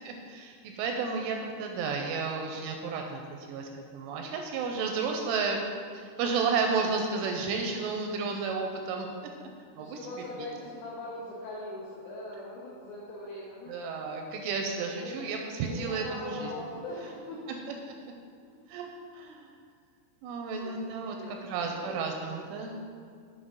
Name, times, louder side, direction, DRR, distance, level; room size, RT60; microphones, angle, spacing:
voice 1, 0.1-3.2 3.5-5.6 5.9-9.1 9.8-10.0 13.7-16.5 18.7-18.9 19.1-19.5 20.2-21.2 21.4-22.8, right 5 dB, 85° right, 2 dB, 2.9 m, -32 dB
voice 2, 9.8-13.8 14.9-15.3 15.6-17.8 18.4-18.6 20.6-22.0 22.3-22.9, left 1 dB, 80° left, -7 dB, 2.3 m, -42 dB
7.8 x 5.7 x 3.9 m, 2.1 s
omnidirectional pair, 5.8 m